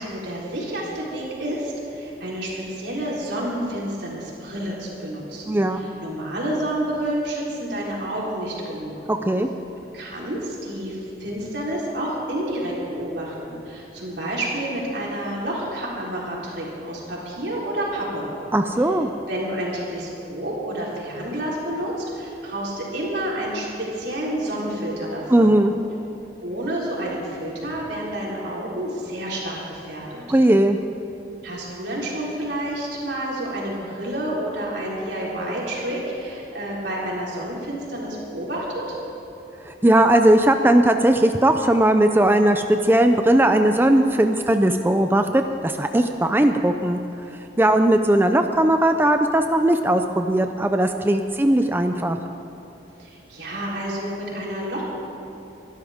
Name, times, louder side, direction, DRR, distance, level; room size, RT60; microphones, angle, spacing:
voice 1, 0.0-8.9 9.9-18.3 19.3-25.5 26.4-30.2 31.4-38.9 53.0-54.8, right 1 dB, 80° right, -5 dB, 3.9 m, -29 dB
voice 2, 5.5-5.8 9.1-9.5 18.5-19.1 25.3-25.7 30.3-30.8 39.7-47.0 47.6-52.2, right 1 dB, 10° right, 6 dB, 0.4 m, -18 dB
23.0 x 12.0 x 3.6 m, 2.9 s
head